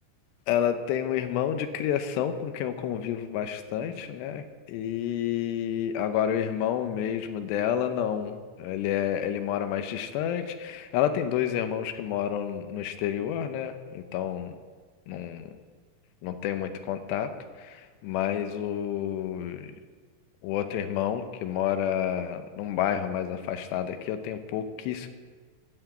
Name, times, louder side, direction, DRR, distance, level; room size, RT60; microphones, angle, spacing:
voice 1, 0.5-14.6 15.1-15.5 16.2-17.3 17.6-19.7 20.4-25.1, left 10 dB, 85° left, 8 dB, 2.9 m, -29 dB
14.5 x 5.9 x 7.9 m, 1.5 s
omnidirectional pair, 4.8 m